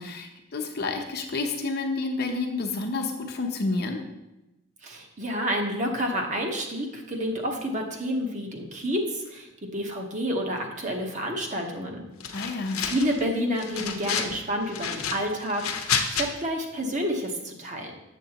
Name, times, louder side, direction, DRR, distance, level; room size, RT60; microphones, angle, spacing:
voice 1, 0.0-4.0 12.3-12.8, left 3 dB, 50° left, 3 dB, 0.9 m, -29 dB
voice 2, 4.8-12.0 12.8-17.9, equal, 35° right, 2 dB, 1.0 m, -29 dB
sound 1, 12.2-13.2 13.6-14.4 14.7-16.3, left 7 dB, 90° left, 0.8 m, -29 dB
7.5 x 7.2 x 2.9 m, 0.95 s
head